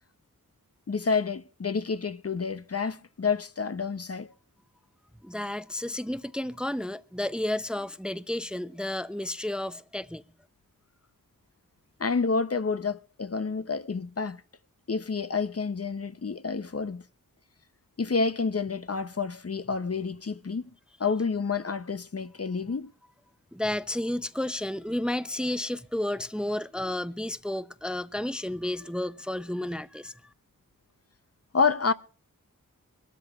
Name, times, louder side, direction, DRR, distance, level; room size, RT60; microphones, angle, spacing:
voice 1, 0.9-4.3 12.0-14.4 14.9-17.0 18.0-20.6 21.0-22.9 31.5-31.9, left 4 dB, 45° left, 0.7 m, -29 dB
voice 2, 5.2-10.2 23.5-30.3, left 1 dB, 5° right, 0.6 m, -32 dB
24.0 x 13.0 x 2.4 m
wide cardioid pair, 50°, 34 cm